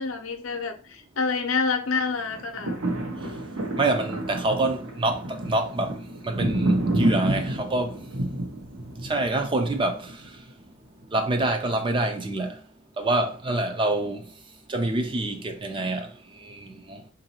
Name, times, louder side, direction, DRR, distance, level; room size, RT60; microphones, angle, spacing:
voice 1, 0.0-2.8, left 4 dB, 75° left, 0.6 m, -27 dB
sound 1, 2.2-10.5 11.0-11.1, right 1 dB, 85° right, 0.9 m, -29 dB
voice 2, 3.8-6.0 6.2-8.0 9.0-10.1 11.1-12.6 13.0-14.2 14.7-16.1 16.4-17.0, right 2 dB, 25° right, 0.4 m, -26 dB
3.9 x 2.6 x 2.8 m
head